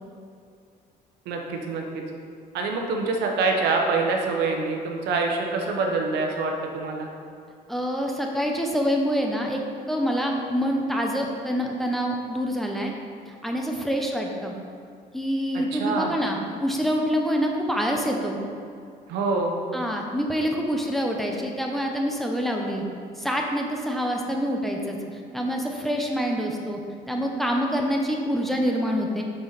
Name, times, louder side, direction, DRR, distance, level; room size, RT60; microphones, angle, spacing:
voice 1, 1.3-2.0 2.5-7.1 15.5-16.2 19.1-19.5, right 3 dB, 80° right, 2 dB, 1.0 m, -25 dB
voice 2, 7.7-9.6 9.9-12.9 13.4-14.5 15.1-18.4 19.7-22.8 23.2-26.8 27.1-29.2, equal, ahead, 0 dB, 0.8 m, -26 dB
6.9 x 5.6 x 4.0 m, 2.4 s
cardioid pair, 110°, 17 cm